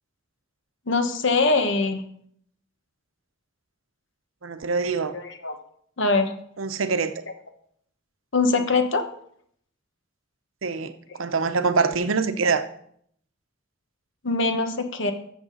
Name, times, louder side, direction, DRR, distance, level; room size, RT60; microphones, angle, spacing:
voice 1, 0.9-2.0 5.1-5.6 6.0-6.3 8.3-9.0 14.2-15.1, left 3 dB, 65° left, 7 dB, 1.2 m, -22 dB
voice 2, 4.4-5.1 6.6-7.2 10.6-12.6, right 4 dB, 80° right, 10 dB, 0.8 m, -24 dB
14.0 x 7.1 x 4.0 m, 0.67 s
head